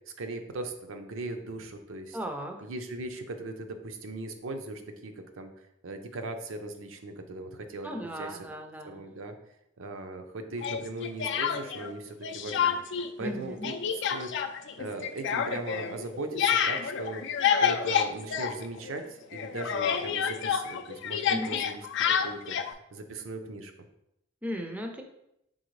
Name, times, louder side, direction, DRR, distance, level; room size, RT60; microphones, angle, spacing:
voice 1, 0.1-2.2 2.6-8.4 8.8-9.4 9.8-12.8 13.2-13.7 14.1-14.3 14.8-17.2 17.6-21.8 22.2-23.7, right 2 dB, 70° right, 6 dB, 0.5 m, -39 dB
voice 2, 2.1-2.6 7.8-9.0 13.2-13.7 21.2-21.6 24.4-25.0, equal, 10° right, 4 dB, 0.4 m, -36 dB
Speech, 10.6-11.9 12.2-13.1 13.3-19.0 19.3-22.7, left 8 dB, 60° left, 0.4 m, -29 dB
4.2 x 3.8 x 3.1 m, 0.82 s
head